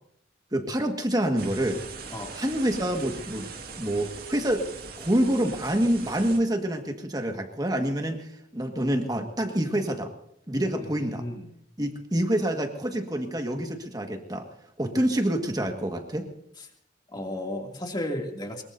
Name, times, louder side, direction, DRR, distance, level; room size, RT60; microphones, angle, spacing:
voice 1, 0.5-1.8 2.3-3.5 3.8-4.6 5.0-10.1 10.5-11.3 11.8-14.5 14.8-16.3, right 1 dB, 20° right, 4 dB, 1.7 m, -27 dB
sound 1, 1.4-6.4, right 5 dB, 55° right, 2.1 m, -41 dB
voice 2, 10.8-11.4 17.1-18.6, left 1 dB, 25° left, 1 dB, 2.6 m, -34 dB
23.5 x 22.5 x 2.7 m, 0.70 s
head